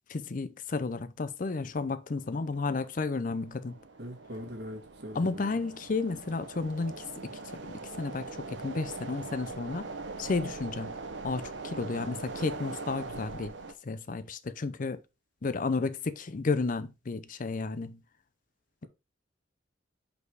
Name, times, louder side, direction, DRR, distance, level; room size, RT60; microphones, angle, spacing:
voice 1, 0.1-3.8 5.1-7.3 7.6-9.9 10.2-13.5 13.8-15.0 15.4-18.0, left 3 dB, 45° left, 0.5 m, -32 dB
sound 1, 2.2-13.7, right 3 dB, 85° right, 0.8 m, -42 dB
voice 2, 4.0-5.6, equal, 65° right, 1.9 m, -42 dB
5.4 x 4.3 x 4.7 m
head